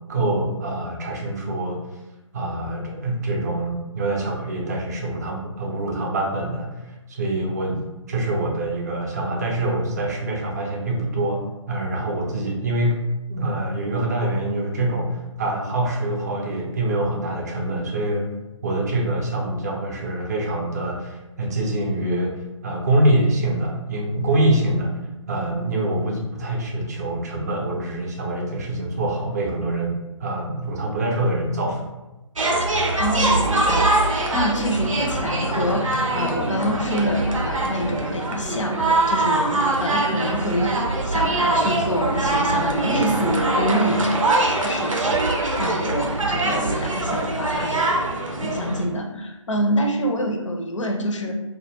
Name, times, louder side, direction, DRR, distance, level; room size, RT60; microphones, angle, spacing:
voice 1, 0.1-1.8 2.3-13.0 13.3-18.3 18.6-24.9 25.3-29.9 30.2-31.9, right 1 dB, 30° right, 0 dB, 0.4 m, -25 dB
sound 1, 32.4-48.8, right 2 dB, 80° right, 0.5 m, -23 dB
voice 2, 33.0-40.8 41.0-47.8 48.4-51.3, equal, 70° left, 3 dB, 0.5 m, -26 dB
2.1 x 2.1 x 3.2 m, 1.0 s
figure-of-eight pair, 140°, 17 cm